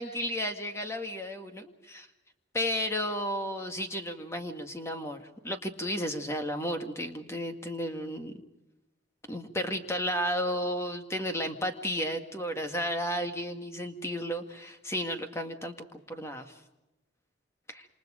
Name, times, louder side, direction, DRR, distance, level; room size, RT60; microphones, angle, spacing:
voice 1, 0.0-2.1 2.5-8.3 9.3-16.5 17.7-17.9, equal, 15° left, 5 dB, 1.8 m, -33 dB
28.0 x 26.5 x 5.1 m, 0.97 s
head